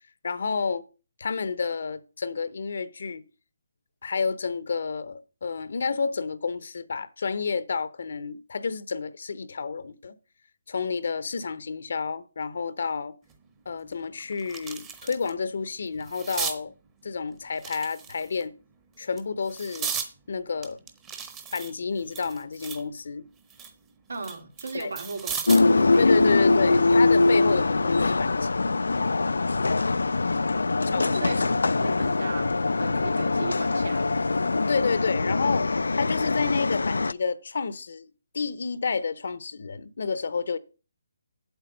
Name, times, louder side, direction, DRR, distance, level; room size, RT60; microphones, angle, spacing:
voice 1, 0.2-0.8 1.2-3.2 4.0-10.1 10.7-13.2 13.7-16.7 17.0-18.5 19.0-19.9 20.3-20.8 21.5-23.3 24.7-24.9 26.0-28.7 30.9-31.3 34.7-38.1 38.3-40.6, left 5 dB, 60° left, 0.8 m, -30 dB
sound 1, 13.3-13.4 13.9-15.3 15.7-16.6 17.5-18.4 19.0-20.1 20.6-22.9 23.3-25.7 27.1-27.3, right 7 dB, 15° right, 0.9 m, -36 dB
voice 2, 24.1-26.5 30.8-34.2, right 3 dB, 85° right, 2.5 m, -37 dB
sound 2, 25.5-37.1, left 3 dB, 90° left, 0.4 m, -23 dB
8.3 x 8.1 x 5.3 m
hypercardioid pair, 165°, 0 cm